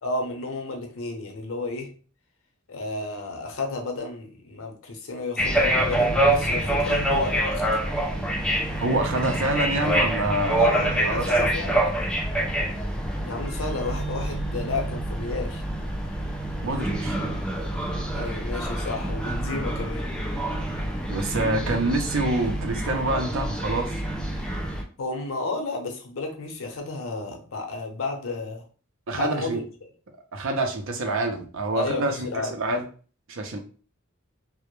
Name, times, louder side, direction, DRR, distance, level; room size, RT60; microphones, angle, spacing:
voice 1, 0.0-1.9 2.7-7.7 10.6-11.8 13.2-15.6 18.1-20.0 25.0-28.6 29.2-29.6 31.7-32.5, left 3 dB, 80° left, 3 dB, 0.6 m, -32 dB
sound 1, 5.4-24.8, right 1 dB, 5° left, 0.3 m, -26 dB
voice 2, 8.8-10.7 11.0-11.5 16.6-17.2 21.1-24.0 29.1-29.6 30.3-32.8 33.3-33.6, right 2 dB, 70° right, 3 dB, 0.5 m, -26 dB
2.1 x 2.0 x 3.0 m, 0.39 s
head